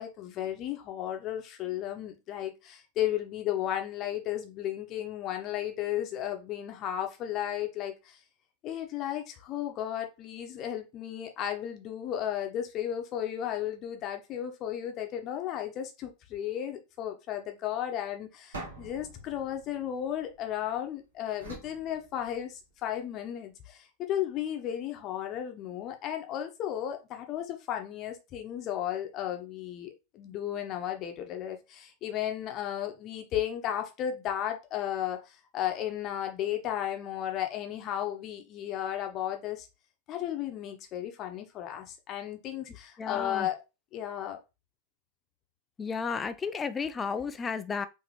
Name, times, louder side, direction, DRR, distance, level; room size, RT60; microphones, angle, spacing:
voice 1, 0.0-8.2 8.6-39.7 40.1-43.6 43.9-44.4, left 11 dB, 35° left, 0.9 m, -34 dB
sound 1, 18.5-20.7 21.4-22.8, right 2 dB, 65° right, 1.6 m, -46 dB
voice 2, 43.0-43.5 45.8-47.9, left 5 dB, 20° left, 0.4 m, -33 dB
4.8 x 2.9 x 3.3 m
figure-of-eight pair, 90°, 0 cm